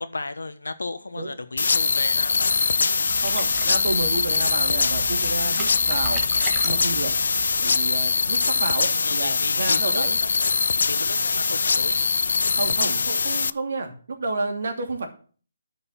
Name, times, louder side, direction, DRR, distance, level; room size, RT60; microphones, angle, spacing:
voice 1, 0.0-2.7 9.0-10.5 10.9-12.2, left 3 dB, 85° left, 1.2 m, -34 dB
sound 1, 1.6-13.5, left 5 dB, 65° left, 0.4 m, -22 dB
sound 2, 3.0-8.1, right 6 dB, 15° right, 1.5 m, -38 dB
voice 2, 3.2-6.2 6.6-7.1 7.6-10.2 12.5-15.1, right 3 dB, 65° right, 2.7 m, -30 dB
10.5 x 5.2 x 7.4 m
figure-of-eight pair, 150°, 0 cm